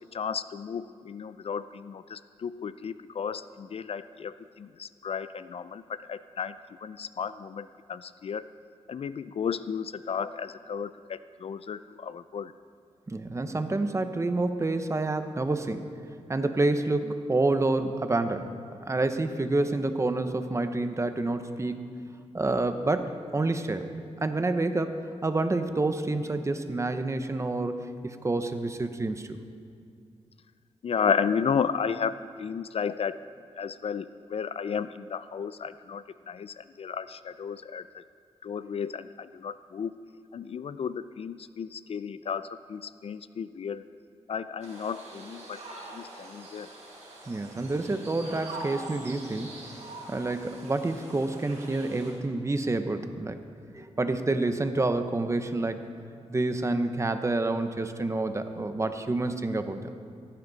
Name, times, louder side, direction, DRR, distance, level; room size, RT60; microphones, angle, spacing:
voice 1, 0.0-6.6 6.8-8.5 8.9-12.5 30.8-32.1 32.4-33.2 33.6-38.0 38.4-39.9 40.3-43.9 44.3-45.6 45.9-46.7, left 6 dB, 60° left, 14 dB, 0.4 m, -33 dB
voice 2, 13.1-15.9 16.3-18.5 18.8-21.9 22.3-23.9 24.2-29.4 47.3-49.7 50.1-53.4 53.7-55.9 56.3-59.8, right 2 dB, 25° right, 8 dB, 0.8 m, -28 dB
sound 1, 44.6-52.1, right 2 dB, 90° right, 4.2 m, -44 dB
17.0 x 14.5 x 4.0 m, 2.3 s
wide cardioid pair, 105°, 11 cm